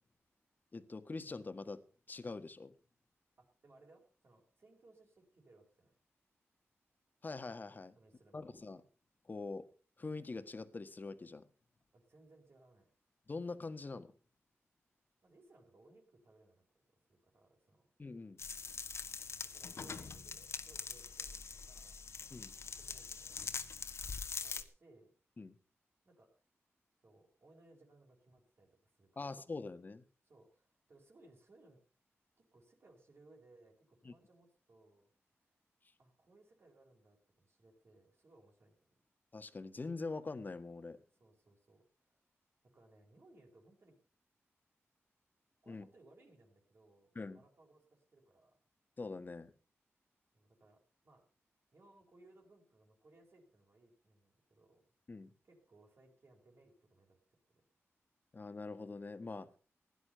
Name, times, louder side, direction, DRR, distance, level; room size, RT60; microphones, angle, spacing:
voice 1, 0.7-2.7 7.2-7.9 8.3-8.8 9.2-9.6 10.0-11.4 13.3-14.1 18.0-18.4 22.3-22.5 25.4-25.5 29.1-30.0 34.0-34.1 39.3-41.0 45.7-45.9 47.1-47.4 49.0-49.5 55.1-55.3 58.3-59.5, left 3 dB, 40° left, 1.6 m, -44 dB
voice 2, 3.4-5.9 8.0-8.5 11.9-12.9 15.2-16.8 17.1-17.9 19.4-21.3 21.7-22.0 22.6-23.6 24.4-25.1 26.0-26.3 27.0-29.3 30.2-31.8 32.4-35.1 36.0-38.8 41.2-42.2 42.6-44.0 45.6-48.6 50.3-51.2 51.7-54.9 55.4-57.6, right 2 dB, 55° right, 4.9 m, -65 dB
sound 1, 18.4-24.6, left 5 dB, 65° left, 1.5 m, -43 dB
16.5 x 11.0 x 5.6 m
wide cardioid pair, 90°, 5 cm